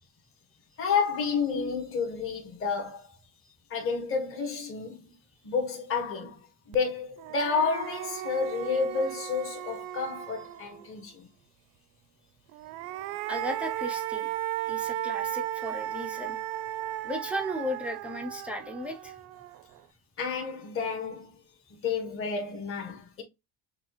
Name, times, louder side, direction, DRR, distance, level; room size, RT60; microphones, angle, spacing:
voice 1, 0.8-3.1 3.7-5.1 5.4-11.3 20.2-21.4 21.7-23.2, left 5 dB, 30° left, 1.4 m, -30 dB
sound 1, 6.7-6.8 7.2-10.9 12.5-19.8, right 14 dB, 70° right, 0.5 m, -35 dB
voice 2, 13.3-14.3 14.7-16.4 17.0-19.2, equal, 5° right, 0.4 m, -35 dB
5.9 x 2.4 x 2.9 m
cardioid pair, 140°, 46 cm